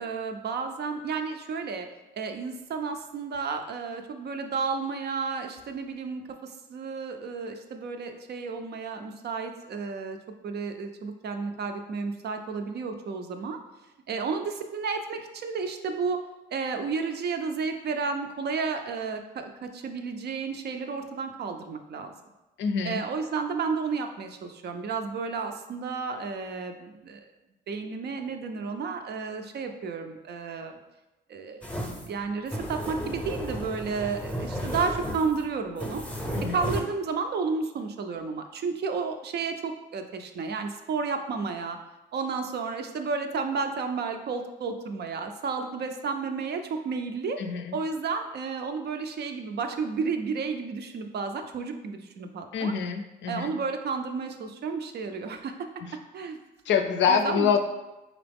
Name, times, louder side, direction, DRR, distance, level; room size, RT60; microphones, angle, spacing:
voice 1, 0.0-1.9 2.1-10.2 10.4-13.6 14.1-16.2 16.5-22.1 22.8-27.2 27.7-30.7 31.3-31.6 32.1-36.0 36.5-41.8 42.1-47.4 47.7-52.8 53.3-55.7 56.1-56.4 57.1-57.6, right 5 dB, 55° right, 6 dB, 0.5 m, -32 dB
voice 2, 22.6-23.0 36.3-36.5 47.4-47.7 52.5-53.6 56.7-57.6, left 6 dB, 65° left, 6 dB, 0.5 m, -25 dB
sound 1, 31.6-36.8, equal, 5° left, 0.7 m, -34 dB
3.9 x 3.0 x 3.4 m, 1.0 s
cardioid pair, 90°, 20 cm